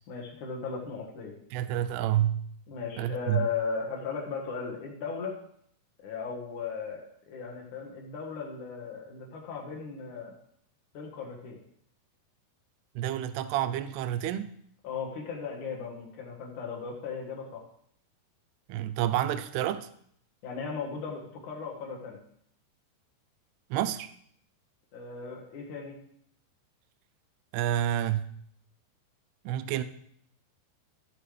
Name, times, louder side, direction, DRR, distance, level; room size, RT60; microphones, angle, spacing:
voice 1, 0.1-1.3 2.7-5.4 6.0-10.3 10.9-11.6 14.8-17.6 20.4-22.2 24.9-26.0, left 5 dB, 60° left, -1 dB, 2.4 m, -37 dB
voice 2, 1.5-2.4 3.0-3.5 13.0-14.5 18.7-19.9 23.7-24.1 27.5-28.2 29.5-29.8, right 12 dB, 80° right, 12 dB, 2.5 m, -29 dB
14.5 x 7.6 x 3.3 m, 0.66 s
omnidirectional pair, 4.9 m